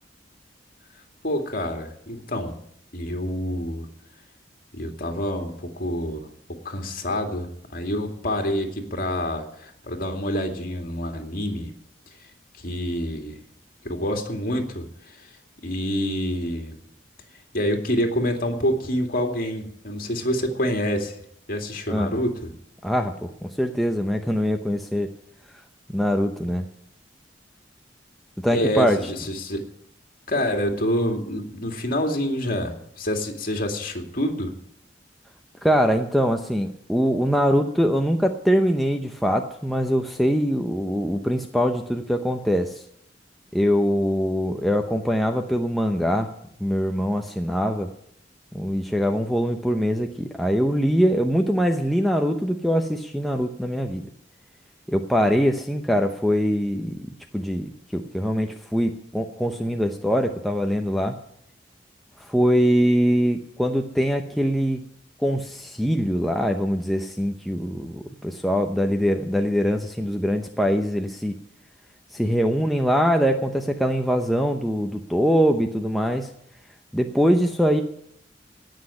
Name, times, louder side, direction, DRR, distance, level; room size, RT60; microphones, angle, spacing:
voice 1, 1.2-2.5 2.9-3.9 4.7-6.3 6.6-11.7 12.6-13.4 13.8-15.3 15.6-16.8 17.5-21.1 21.5-22.5 28.5-29.6 30.3-34.5, equal, 50° left, 4 dB, 2.4 m, -27 dB
voice 2, 22.8-25.1 25.9-26.6 28.4-29.0 35.6-42.8 43.5-46.3 46.6-47.9 48.5-54.0 54.9-61.2 62.3-64.8 65.2-71.3 72.1-76.3 76.9-77.8, equal, ahead, 3 dB, 0.8 m, -23 dB
17.5 x 6.4 x 9.8 m, 0.71 s
head